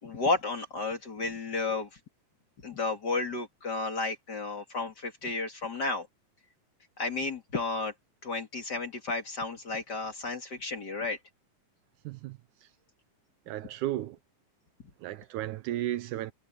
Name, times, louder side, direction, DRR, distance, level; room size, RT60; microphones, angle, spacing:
voice 1, 0.0-1.9 2.6-6.1 7.0-7.9 8.2-11.2, left 3 dB, 35° left, 2.4 m, -32 dB
voice 2, 12.0-12.4 13.5-14.2 15.0-16.3, right 14 dB, 80° right, 2.1 m, -34 dB
omnidirectional pair, 3.7 m